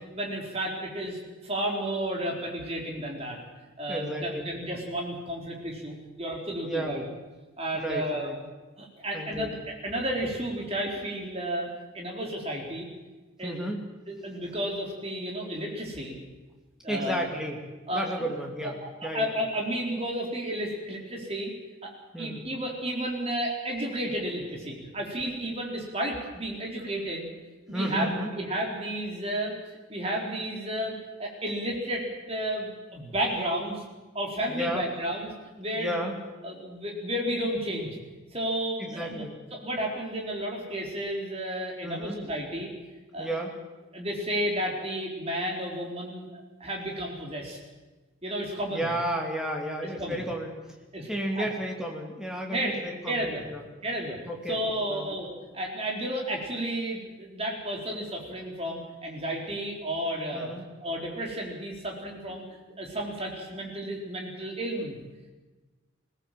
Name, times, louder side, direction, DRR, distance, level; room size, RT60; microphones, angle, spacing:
voice 1, 0.1-3.4 3.8-7.0 7.6-8.4 8.8-11.7 11.9-12.9 13.4-13.7 14.1-16.2 16.8-17.3 17.9-18.0 18.6-18.9 19.1-21.5 21.8-21.9 22.2-27.3 27.7-30.9 31.2-33.8 34.1-35.3 35.6-35.9 36.4-38.0 38.3-39.2 39.5-42.7 43.1-43.3 43.9-47.6 48.2-48.9 50.0-50.2 50.9-51.1 51.4-51.5 52.5-52.7 53.1-53.5 53.8-54.2 54.5-60.5 60.8-62.4 62.8-65.0, right 1 dB, 30° right, -1 dB, 4.1 m, -32 dB
voice 2, 3.9-4.5 6.6-6.9 7.7-8.3 9.1-9.5 13.4-13.8 16.9-17.6 17.9-18.8 19.0-19.3 22.1-22.4 27.7-28.3 34.5-34.8 35.8-36.1 38.8-39.3 41.8-42.2 43.2-43.5 48.7-50.6 51.1-53.6 54.3-54.6 54.9-55.1 60.3-60.7, equal, 5° right, 1 dB, 2.6 m, -32 dB
21.5 x 17.0 x 7.7 m, 1.2 s
head